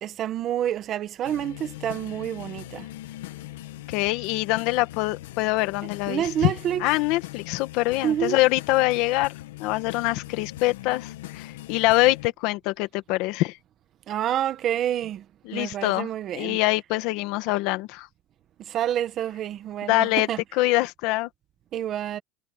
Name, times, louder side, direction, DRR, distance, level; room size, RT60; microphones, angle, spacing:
voice 1, 0.0-2.8 6.1-6.9 8.0-8.4 14.1-15.2 15.5-16.6 18.7-20.4 21.7-22.2, right 11 dB, 30° right, 1.4 m, -28 dB
sound 1, 1.2-12.2, left 16 dB, 85° left, 1.3 m, -41 dB
voice 2, 3.9-6.5 6.8-9.3 9.6-13.6 15.4-16.1 16.3-18.1 19.9-21.3, left 19 dB, 50° left, 1.5 m, -24 dB
supercardioid pair, 165°, 0 cm